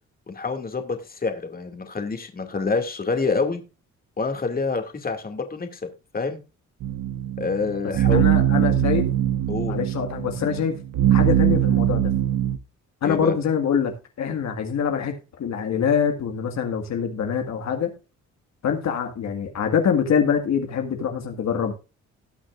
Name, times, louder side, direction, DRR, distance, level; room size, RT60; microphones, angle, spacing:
voice 1, 0.3-3.6 4.2-5.8 6.1-6.4 7.4-8.3 9.5-9.8 13.0-13.4, left 4 dB, 30° left, 2.3 m, -27 dB
sound 1, 6.8-12.6, right 11 dB, 80° right, 0.9 m, -21 dB
voice 2, 8.1-9.1 9.7-10.8 11.1-12.1 13.0-15.1 15.4-17.9 18.6-21.7, left 7 dB, 65° left, 1.9 m, -24 dB
18.5 x 6.3 x 2.5 m
cardioid pair, 90°, 30 cm